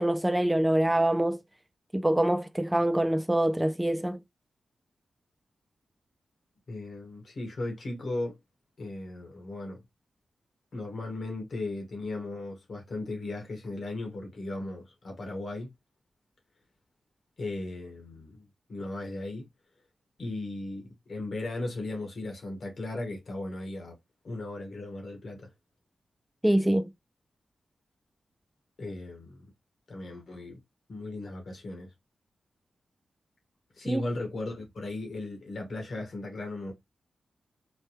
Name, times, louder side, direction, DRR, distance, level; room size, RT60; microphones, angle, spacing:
voice 1, 0.0-1.4 1.9-4.2 26.4-26.9 33.8-34.0, right 1 dB, 10° right, 0.4 m, -25 dB
voice 2, 6.7-8.4 8.8-9.8 10.7-15.7 17.4-19.4 20.2-23.9 24.2-25.5 28.8-29.4 29.9-30.6 30.9-31.9 33.8-36.7, left 2 dB, 65° left, 1.3 m, -36 dB
3.2 x 2.2 x 3.0 m
supercardioid pair, 45°, 0 cm